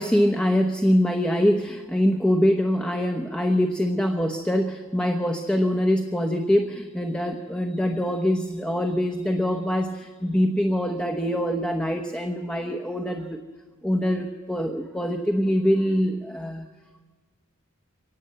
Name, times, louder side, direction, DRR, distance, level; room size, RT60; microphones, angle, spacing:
voice 1, 0.0-13.4 13.8-16.7, equal, 5° left, 4 dB, 0.9 m, -24 dB
24.5 x 18.5 x 7.8 m, 1.4 s
head